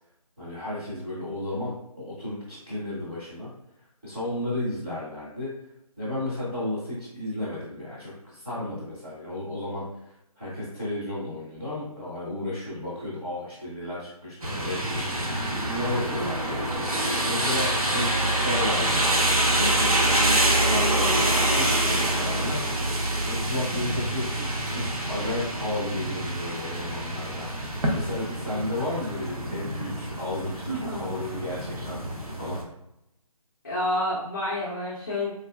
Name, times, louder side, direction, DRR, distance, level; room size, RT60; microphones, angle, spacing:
voice 1, 0.4-3.5 4.0-5.5 6.0-15.2 15.6-16.6 17.2-19.1 19.5-22.9 23.2-32.0 32.4-32.6, left 1 dB, 15° right, -10 dB, 0.6 m, -33 dB
sound 1, 14.4-32.6, right 1 dB, 70° right, 0.8 m, -26 dB
voice 2, 30.7-31.1 33.6-35.3, left 1 dB, 30° left, -7 dB, 0.5 m, -29 dB
3.7 x 2.7 x 2.2 m, 0.83 s
figure-of-eight pair, 170°, 20 cm